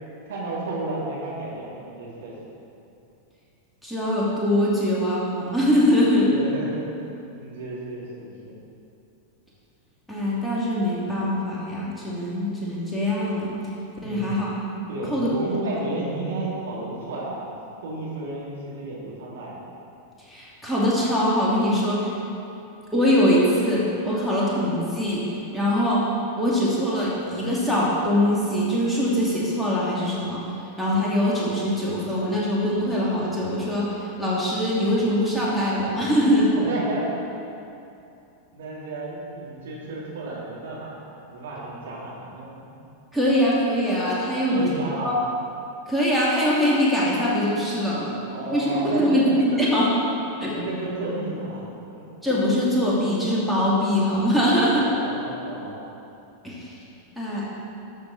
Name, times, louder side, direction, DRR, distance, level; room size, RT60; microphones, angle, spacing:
voice 1, 0.2-2.3 6.2-8.5 14.0-14.4 14.9-17.5 17.8-19.6 36.5-37.2 38.5-41.0 41.3-42.7 44.5-45.1 48.0-49.2 49.5-49.7 50.5-51.6 51.9-52.0 55.0-55.7, right 2 dB, 60° right, -6 dB, 2.5 m, -32 dB
voice 2, 3.8-6.3 10.1-13.5 14.0-14.5 15.1-15.3 20.3-22.1 22.9-25.2 25.5-26.0 26.4-30.4 30.8-36.5 43.1-44.6 45.0-45.1 45.9-48.2 48.5-49.9 50.4-50.6 52.2-54.9 56.4-56.7 57.2-57.4, equal, ahead, -7 dB, 2.3 m, -22 dB
12.0 x 7.4 x 4.0 m, 2.7 s
figure-of-eight pair, 90°, 0 cm